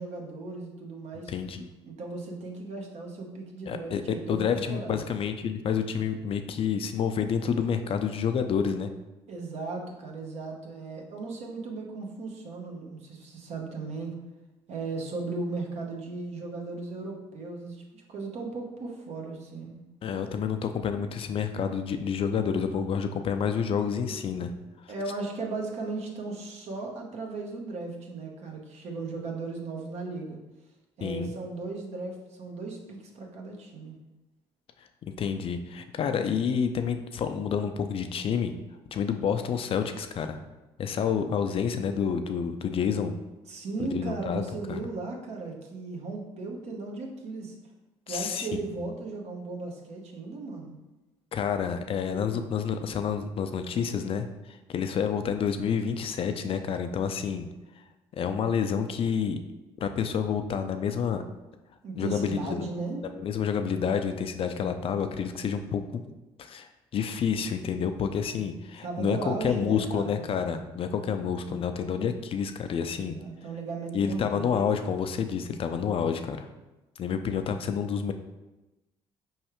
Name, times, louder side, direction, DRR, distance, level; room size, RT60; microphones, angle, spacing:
voice 1, 0.0-1.3 1.9-5.1 9.3-14.2 14.7-19.8 24.9-30.4 31.0-33.9 43.5-47.5 48.1-50.8 61.8-63.0 68.8-70.2 72.9-74.6, right 3 dB, 60° right, 0 dB, 0.9 m, -36 dB
voice 2, 1.3-1.7 3.7-4.0 4.3-8.9 20.0-24.5 31.0-31.3 35.0-38.5 38.9-40.4 40.8-43.1 43.8-44.4 44.7-44.8 48.1-48.6 51.3-57.5 58.1-59.4 59.8-61.2 62.0-62.7 63.2-66.0 66.4-66.7 66.9-73.2 73.9-76.5 77.0-78.1, left 7 dB, 50° left, 8 dB, 0.4 m, -29 dB
4.7 x 3.2 x 3.0 m, 1.0 s
supercardioid pair, 70°, 12 cm